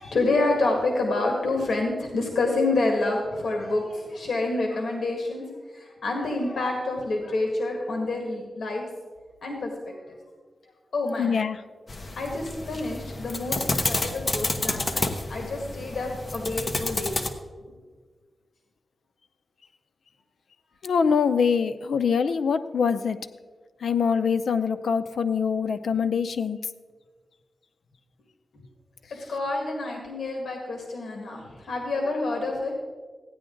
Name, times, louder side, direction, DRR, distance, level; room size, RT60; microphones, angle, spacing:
voice 1, 0.0-5.4 5.7-8.8 9.4-10.0 10.9-11.4 12.2-17.1 17.7-17.8 29.3-32.8, left 2 dB, 65° left, 1 dB, 1.8 m, -28 dB
voice 2, 11.2-11.6 20.8-23.2 23.8-26.6, left 6 dB, 80° left, 10 dB, 0.5 m, -24 dB
sound 1, 11.9-17.3, left 2 dB, 35° left, 0.9 m, -30 dB
15.5 x 10.0 x 3.9 m, 1.5 s
wide cardioid pair, 160°, 0 cm